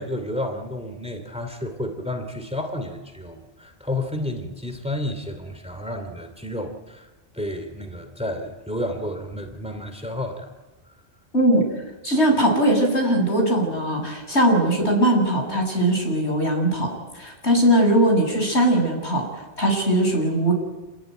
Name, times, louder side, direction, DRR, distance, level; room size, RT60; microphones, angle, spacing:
voice 1, 0.0-7.1 7.3-10.5, left 1 dB, 5° right, 6 dB, 2.8 m, -31 dB
voice 2, 11.3-11.7 12.0-16.9 17.1-19.3 19.6-20.5, right 1 dB, 80° left, 2 dB, 7.8 m, -20 dB
28.0 x 21.0 x 9.3 m, 1.2 s
omnidirectional pair, 1.1 m